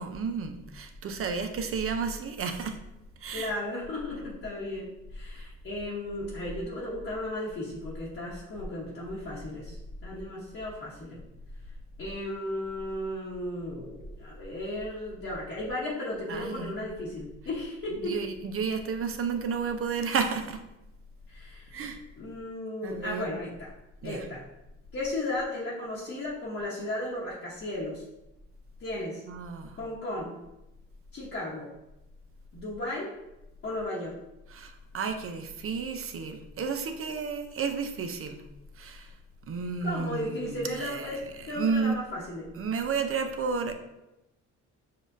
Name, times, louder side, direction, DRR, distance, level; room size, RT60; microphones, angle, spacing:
voice 1, 0.0-2.8 3.2-3.5 16.3-16.7 18.0-20.6 21.7-22.0 22.8-23.3 24.0-24.3 29.3-29.8 34.5-38.4 38.8-39.1 39.5-41.1 41.5-42.0 42.6-43.7, right 5 dB, 45° right, 6 dB, 0.6 m, -32 dB
voice 2, 3.3-11.2 12.0-18.2 21.3-21.7 22.2-23.7 24.0-24.4 24.9-28.0 28.8-29.2 29.8-30.3 31.1-31.7 32.5-33.1 33.6-34.2 39.8-42.5, left 1 dB, 45° left, -7 dB, 1.1 m, -35 dB
6.9 x 2.4 x 2.6 m, 0.94 s
cardioid pair, 90°, 30 cm